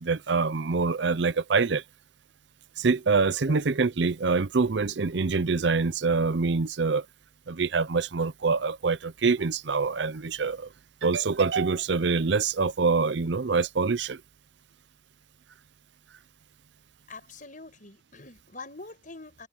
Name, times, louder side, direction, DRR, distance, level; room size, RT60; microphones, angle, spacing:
voice 1, 0.0-1.8 2.8-7.1 7.5-10.7 11.0-14.2, right 4 dB, 65° right, 0.6 m, -25 dB
voice 2, 17.1-19.5, left 3 dB, 45° left, 7.0 m, -44 dB
head